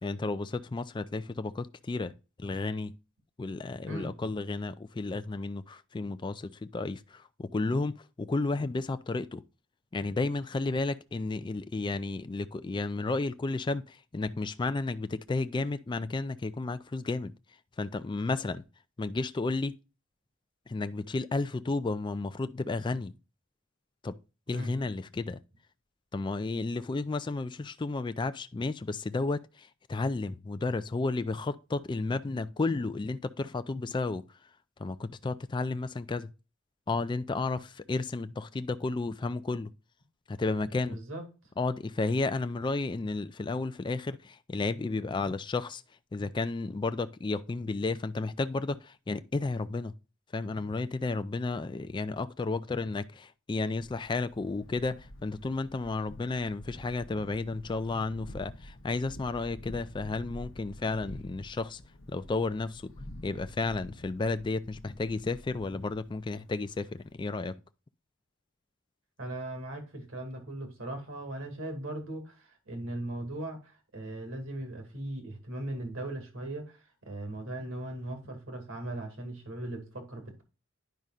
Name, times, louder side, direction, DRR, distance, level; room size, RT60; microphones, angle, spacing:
voice 1, 0.0-2.1 2.4-3.0 3.4-9.4 9.9-17.3 17.8-18.6 19.0-19.7 20.7-23.1 24.0-24.2 24.5-25.4 26.1-34.2 34.8-36.3 36.9-39.7 40.3-41.0 41.6-45.8 46.1-49.9 50.3-61.8 62.1-62.9 63.2-67.6, left 3 dB, 25° left, 0.3 m, -32 dB
voice 2, 40.8-41.2 69.2-80.4, right 1 dB, 70° right, 2.3 m, -39 dB
Thunder, 53.8-67.1, left 1 dB, 75° left, 0.9 m, -48 dB
10.5 x 5.4 x 2.4 m
head